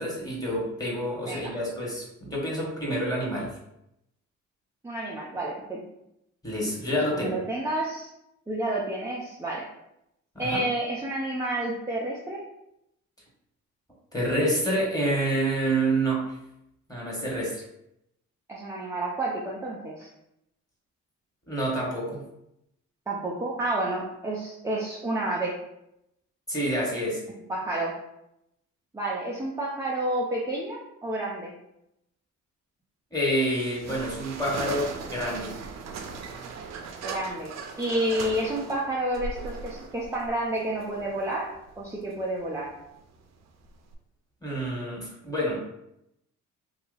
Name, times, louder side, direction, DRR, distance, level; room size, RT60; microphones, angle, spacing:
voice 1, 0.0-3.5 6.4-7.3 10.3-10.6 14.1-16.2 16.9-17.6 21.5-22.2 26.5-27.2 33.1-35.5 44.4-45.7, right 1 dB, 10° left, -4 dB, 1.5 m, -28 dB
voice 2, 4.8-5.8 7.1-8.1 8.5-9.7 10.4-12.4 18.5-20.1 23.1-25.6 27.5-28.0 28.9-31.5 37.0-42.7, right 1 dB, 10° right, -4 dB, 0.6 m, -30 dB
sound 1, 33.5-43.9, right 5 dB, 60° right, 0.5 m, -39 dB
2.8 x 2.4 x 4.0 m, 0.82 s
cardioid pair, 90°, 30 cm